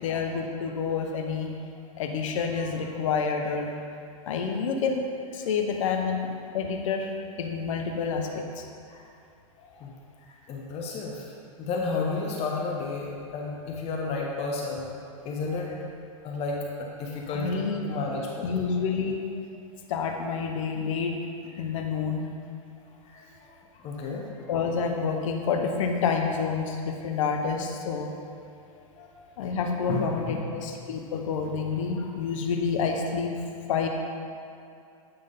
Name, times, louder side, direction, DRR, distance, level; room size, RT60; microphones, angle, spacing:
voice 1, 0.0-1.5 2.0-3.7 4.3-5.1 5.3-8.3 17.3-17.8 18.4-19.2 19.9-21.1 21.6-22.2 24.5-28.1 29.4-33.3 33.7-33.9, left 5 dB, 65° left, 2 dB, 0.8 m, -28 dB
voice 2, 9.6-9.9 10.5-11.2 11.6-15.0 15.2-15.8 16.2-17.5 17.8-18.5 20.7-20.8 23.1-23.2 23.8-24.2 29.0-29.1 29.9-30.6, left 4 dB, 35° left, -2 dB, 1.0 m, -32 dB
8.6 x 3.4 x 5.3 m, 2.5 s
hypercardioid pair, 105°, 18 cm